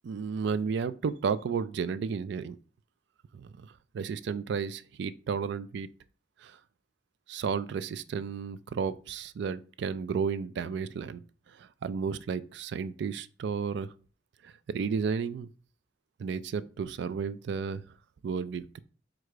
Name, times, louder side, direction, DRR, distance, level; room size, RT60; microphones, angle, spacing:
voice 1, 0.0-2.6 3.3-5.9 6.4-6.6 7.3-11.2 11.5-13.9 14.4-15.5 16.2-17.8 18.2-18.8, right 5 dB, 65° right, 0.3 m, -33 dB
4.4 x 2.5 x 4.7 m
head